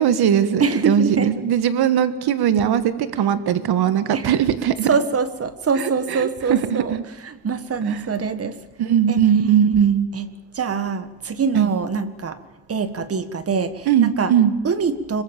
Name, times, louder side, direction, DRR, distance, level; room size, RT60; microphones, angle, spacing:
voice 1, 0.0-4.9 5.8-5.9 6.1-7.0 7.9-8.0 8.8-10.1 11.5-11.7 13.9-14.5, right 9 dB, 75° right, 12 dB, 1.6 m, -19 dB
voice 2, 0.6-1.3 4.1-4.3 4.8-7.0 7.2-8.6 9.1-9.2 10.1-10.3 10.5-12.4 12.7-14.3 14.6-15.2, right 5 dB, 35° right, 12 dB, 1.7 m, -24 dB
25.5 x 23.0 x 7.3 m, 1.0 s
cardioid pair, 130°, 39 cm